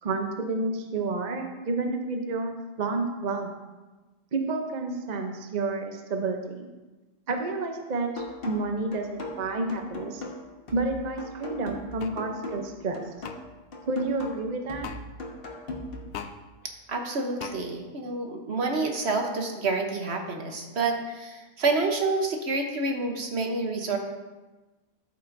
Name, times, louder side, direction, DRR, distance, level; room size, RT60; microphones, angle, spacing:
voice 1, 0.0-3.5 4.3-6.7 7.3-10.2 10.7-13.0 13.9-14.9, right 3 dB, 40° right, 4 dB, 0.7 m, -30 dB
sound 1, 8.2-16.2, left 1 dB, 50° left, 1.3 m, -39 dB
sound 2, 12.0-12.2 13.2-13.4 14.8-15.0 16.1-16.3 17.4-17.6, left 8 dB, 70° left, 0.8 m, -37 dB
voice 2, 16.9-24.0, right 3 dB, 60° right, 3 dB, 1.2 m, -28 dB
12.5 x 6.7 x 2.6 m, 1.2 s
omnidirectional pair, 1.3 m